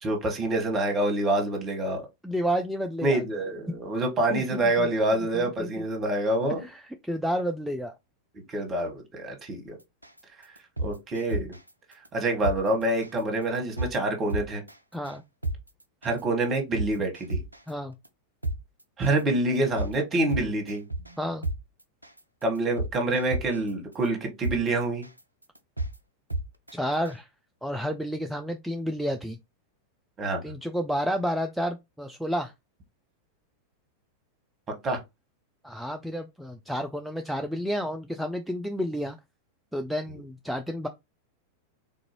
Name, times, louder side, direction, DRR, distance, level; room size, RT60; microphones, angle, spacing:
voice 1, 0.0-2.0 3.0-6.7 8.5-9.8 10.8-11.5 12.1-14.6 16.0-17.4 19.0-20.8 22.4-25.1 30.2-30.4 34.8-35.0, right 2 dB, 25° right, 1.3 m, -26 dB
voice 2, 2.2-3.2 4.3-4.9 5.1-5.7 6.6-7.9 14.9-15.2 17.7-17.9 21.2-21.4 26.7-27.3 27.6-29.4 30.4-32.5 35.6-39.2 39.7-40.9, equal, ahead, 0.4 m, -30 dB
sound 1, 10.0-10.2 10.6-11.7 12.0-12.1 12.4-12.6 13.0-13.2 13.5-13.9 14.3-14.7 15.0-15.1 15.4-15.6 16.0-16.2 16.5-17.7 18.0-18.1 18.4-18.6 19.0-19.2 19.5-19.9 20.3-21.1 21.4-21.6 22.0-22.2 22.5-23.7 24.0-24.1 24.4-24.6 25.0-25.2 25.5-25.9 26.3-26.7 27.0-27.1, right 2 dB, 85° right, 0.4 m, -30 dB
3.7 x 2.5 x 2.9 m
figure-of-eight pair, 90°, 0 cm